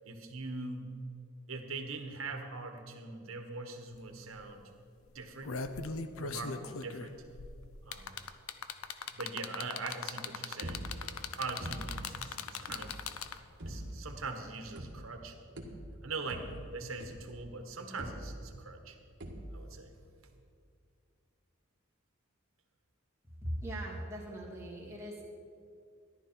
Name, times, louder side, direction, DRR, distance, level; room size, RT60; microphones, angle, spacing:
voice 1, 0.0-0.9 1.5-4.7 5.1-5.6 6.2-7.2 7.8-8.3 9.1-13.0 13.6-15.4 16.0-19.0 19.5-20.0, right 3 dB, 85° right, 5 dB, 1.4 m, -42 dB
sound 1, 3.9-4.0 4.3-4.6 5.1-13.6 14.8-14.9, left 5 dB, 85° left, 0.6 m, -40 dB
sound 2, 10.6-11.2 11.6-12.1 12.7-13.0 13.6-14.1 14.8-15.3 15.6-17.5 18.0-18.7 19.2-19.8, right 1 dB, 60° right, 1.7 m, -43 dB
voice 2, 23.4-25.2, right 1 dB, 15° right, -5 dB, 2.6 m, -39 dB
14.0 x 11.0 x 4.5 m, 2.3 s
head